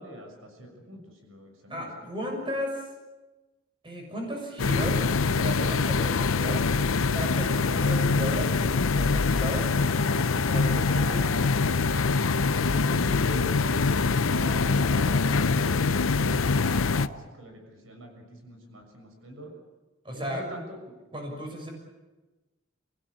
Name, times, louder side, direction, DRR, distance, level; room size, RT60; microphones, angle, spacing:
voice 1, 0.0-2.3 12.5-19.5 20.1-20.9, equal, 85° right, 3 dB, 6.7 m, -44 dB
voice 2, 1.7-2.7 3.8-5.0 5.3-6.6 7.1-11.3 20.0-20.4 21.1-21.7, equal, 25° right, 1 dB, 6.7 m, -35 dB
sound 1, 4.6-17.1, left 4 dB, 90° left, 0.7 m, -24 dB
sound 2, 9.2-13.2 14.6-15.7 16.3-17.2, equal, 50° right, 5.2 m, -42 dB
28.5 x 17.0 x 8.8 m, 1.1 s
head